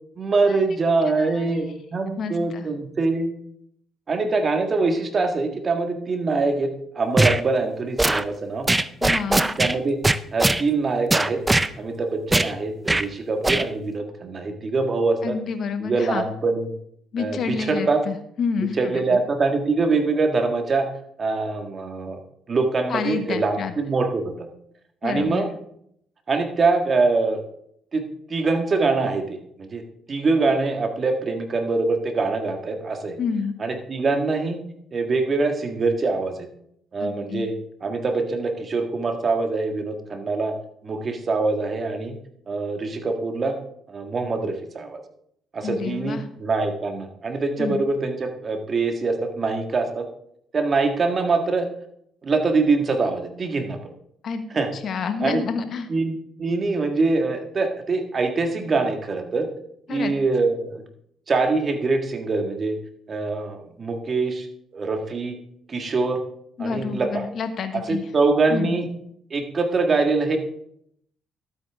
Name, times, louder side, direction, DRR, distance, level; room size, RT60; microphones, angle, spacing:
voice 1, 0.2-3.3 4.1-6.7 7.0-8.7 9.6-10.0 10.3-11.4 11.8-15.4 15.8-16.7 17.2-18.0 18.8-20.9 21.2-22.2 22.5-24.5 25.0-25.5 26.3-27.4 27.9-29.8 30.1-33.2 33.6-34.6 34.9-36.5 36.9-37.5 37.8-40.5 40.8-42.1 42.5-43.6 43.9-45.0 45.5-50.1 50.5-51.7 52.2-53.8 54.5-54.7 55.2-55.4 55.9-59.5 59.9-60.8 61.3-62.8 63.1-64.5 64.7-65.4 65.7-66.2 66.6-67.2 67.9-68.9 69.3-70.4, right 3 dB, 40° right, 5 dB, 1.8 m, -24 dB
voice 2, 1.2-1.7 2.2-2.7 9.0-9.5 15.2-16.3 17.1-19.2 22.9-23.7 25.0-25.5 33.2-33.6 37.0-37.5 45.6-46.3 47.6-47.8 54.2-54.4 54.7-55.9 59.9-60.1 66.6-68.1 68.5-68.8, left 5 dB, 55° left, 8 dB, 1.2 m, -29 dB
sound 1, 7.2-7.4 8.0-8.2 8.7-9.7 10.0-10.6 11.1-11.7 12.3-12.5 12.9-13.0 13.4-13.6, right 2 dB, 15° right, 0.5 m, -20 dB
12.0 x 8.6 x 3.6 m, 0.70 s
cardioid pair, 80°, 0 cm